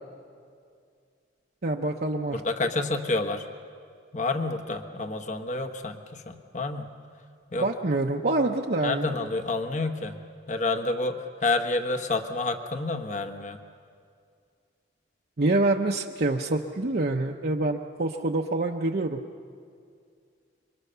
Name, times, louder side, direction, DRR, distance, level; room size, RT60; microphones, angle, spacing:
voice 1, 1.6-2.4 7.5-9.3 15.4-19.2, right 2 dB, 55° right, 0 dB, 0.8 m, -26 dB
voice 2, 2.3-3.4 4.1-6.9 7.5-7.7 8.8-10.2 10.5-11.2 11.4-13.6, left 3 dB, 40° left, 6 dB, 1.2 m, -29 dB
26.0 x 23.5 x 6.8 m, 2.3 s
head